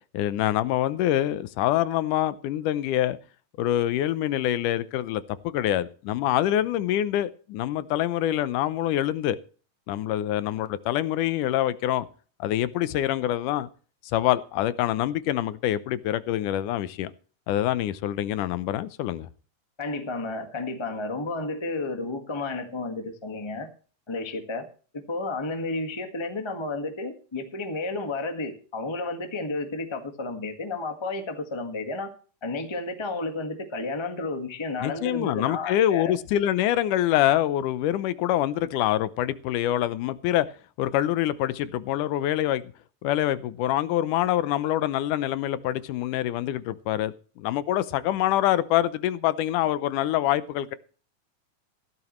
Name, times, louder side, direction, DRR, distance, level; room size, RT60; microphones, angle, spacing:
voice 1, 0.1-3.2 3.6-9.4 9.9-12.1 12.4-13.7 14.1-17.1 17.5-19.3 34.8-40.5 40.8-42.6 43.0-50.8, left 13 dB, 80° left, 2.3 m, -25 dB
voice 2, 19.8-23.7 24.1-24.7 24.9-32.1 32.4-36.2, left 3 dB, 25° left, 0.6 m, -32 dB
15.5 x 12.5 x 3.1 m
omnidirectional pair, 3.7 m